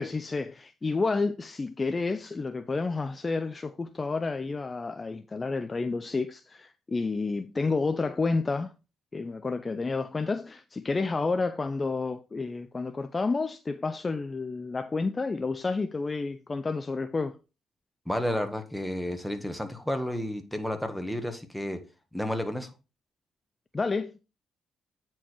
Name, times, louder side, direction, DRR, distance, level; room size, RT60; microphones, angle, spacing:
voice 1, 0.0-8.7 9.1-17.4 23.7-24.2, left 3 dB, 25° left, 0.5 m, -30 dB
voice 2, 18.0-21.8 22.1-22.7, left 1 dB, ahead, 1.6 m, -31 dB
9.0 x 4.5 x 4.5 m
cardioid pair, 90°, 0 cm